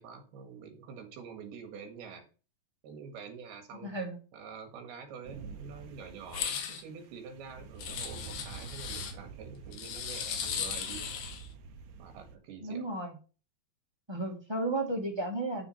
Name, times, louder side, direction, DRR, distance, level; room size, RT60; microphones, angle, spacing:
voice 1, 0.0-2.3 2.8-4.0 4.3-11.1 12.0-13.0, right 6 dB, 90° right, 5 dB, 3.8 m, -47 dB
voice 2, 3.8-4.2 12.6-13.1 14.1-15.7, right 2 dB, 15° right, 0 dB, 1.0 m, -33 dB
sound 1, 5.2-12.4, right 6 dB, 70° right, 2.0 m, -47 dB
sound 2, 6.3-6.8 7.8-9.1 9.7-11.5, left 8 dB, 70° left, 2.9 m, -37 dB
12.5 x 4.5 x 4.4 m, 0.35 s
omnidirectional pair, 4.4 m